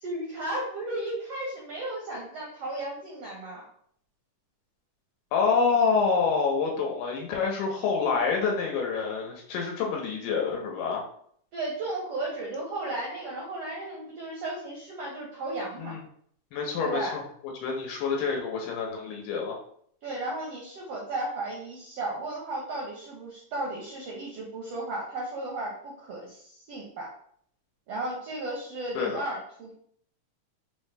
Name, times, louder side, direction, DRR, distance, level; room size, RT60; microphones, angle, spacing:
voice 1, 0.0-3.6 11.5-15.9 16.8-17.2 20.0-27.1 27.9-29.7, right 2 dB, 75° right, -3 dB, 1.4 m, -34 dB
voice 2, 5.3-11.1 15.8-16.0 16.5-17.2 17.6-19.6 29.0-29.2, left 5 dB, 85° left, 0 dB, 2.3 m, -27 dB
5.3 x 2.1 x 3.3 m, 0.62 s
omnidirectional pair, 3.7 m